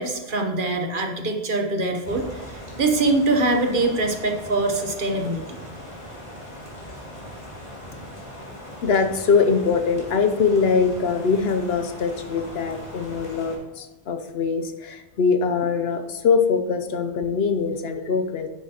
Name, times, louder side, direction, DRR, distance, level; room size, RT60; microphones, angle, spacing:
voice 1, 0.0-5.6, right 2 dB, 50° right, 4 dB, 1.1 m, -23 dB
sound 1, 2.0-13.6, equal, 30° left, 2.2 m, -39 dB
voice 2, 8.8-18.5, left 5 dB, 70° left, 6 dB, 0.9 m, -22 dB
9.4 x 7.2 x 2.9 m, 1.1 s
omnidirectional pair, 1.1 m